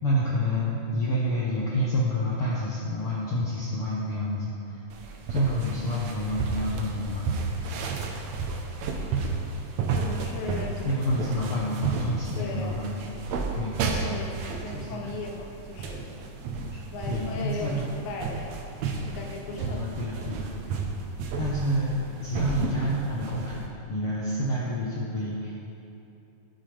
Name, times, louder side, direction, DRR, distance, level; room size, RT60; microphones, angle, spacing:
voice 1, 0.0-4.5 5.3-7.3 10.8-12.9 13.5-14.0 14.7-15.1 16.7-16.8 17.1-17.9 19.6-20.5 21.4-25.5, equal, 60° left, -6 dB, 1.5 m, -28 dB
sound 1, 4.9-23.7, right 4 dB, 70° right, 1.7 m, -32 dB
voice 2, 9.9-11.0 12.4-12.7 14.0-16.2 16.9-18.6 19.1-19.8 20.2-20.3, left 2 dB, 90° left, 0 dB, 2.9 m, -37 dB
17.5 x 6.5 x 3.3 m, 2.8 s
omnidirectional pair, 3.8 m